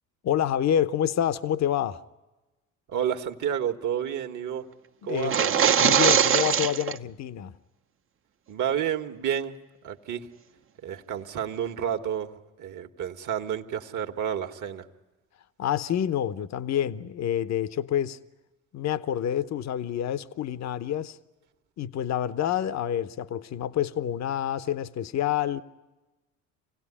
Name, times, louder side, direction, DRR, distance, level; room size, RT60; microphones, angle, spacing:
voice 1, 0.2-2.0 5.0-7.5 15.6-18.2 18.7-21.2 21.8-25.6, left 10 dB, 45° left, 0.9 m, -28 dB
voice 2, 2.9-4.7 5.0-5.6 8.5-9.6 9.8-10.3 10.8-14.8, right 9 dB, 55° right, 1.6 m, -30 dB
sound 1, 5.2-7.0, right 8 dB, 35° right, 0.8 m, -21 dB
26.5 x 17.0 x 9.9 m
hypercardioid pair, 65°, 37 cm